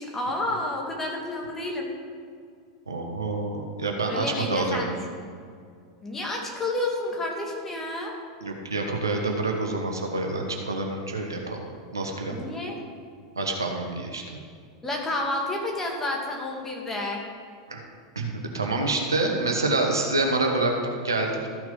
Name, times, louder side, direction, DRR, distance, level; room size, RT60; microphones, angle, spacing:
voice 1, 0.0-1.9 4.1-4.9 6.0-8.1 12.3-12.8 14.8-17.2, left 2 dB, 15° left, -1 dB, 2.3 m, -30 dB
voice 2, 2.9-4.8 8.4-11.6 11.9-12.4 13.4-14.2 17.7-17.8 18.1-18.3 18.5-21.5, right 2 dB, 80° right, 2 dB, 1.4 m, -27 dB
13.5 x 6.4 x 5.1 m, 2.2 s
figure-of-eight pair, 85°, 2 cm